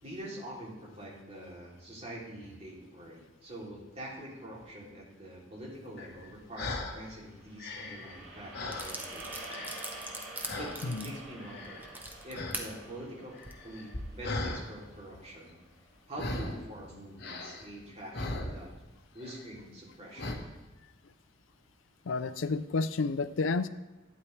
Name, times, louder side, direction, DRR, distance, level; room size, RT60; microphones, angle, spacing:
voice 1, 0.0-9.7 10.5-11.9 12.2-13.4 13.6-15.6 16.1-18.7 19.1-20.5, right 1 dB, 35° right, -4 dB, 3.0 m, -45 dB
sound 1, 6.0-7.0 7.4-9.2 9.5-10.1 10.4-10.9 11.4-12.0 12.3-12.6 12.9-14.6 16.1-16.7 17.2-18.9 19.2-19.5 20.2-20.4, left 2 dB, 60° left, 1.2 m, -38 dB
sound 2, 7.4-15.7, right 2 dB, 90° right, 2.5 m, -48 dB
sound 3, 8.2-8.3 8.7-12.7 13.3-13.5, right 2 dB, 10° right, 0.9 m, -41 dB
voice 2, 22.1-23.7, left 4 dB, 75° left, 14 dB, 0.5 m, -30 dB
12.0 x 9.4 x 3.3 m, 1.1 s
head